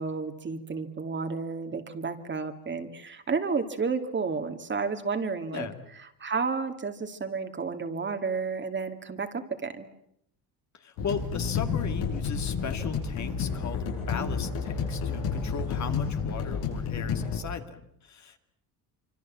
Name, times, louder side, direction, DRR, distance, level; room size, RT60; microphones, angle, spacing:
voice 1, 0.0-5.7 6.2-9.9, right 4 dB, 25° right, 7 dB, 2.3 m, -31 dB
voice 2, 5.5-5.8 10.7-18.4, left 6 dB, 40° left, 7 dB, 2.4 m, -37 dB
sound 1, 11.0-17.4, left 6 dB, 85° left, 7.8 m, -30 dB
25.5 x 25.5 x 7.5 m, 0.73 s
cardioid pair, 115°, 41 cm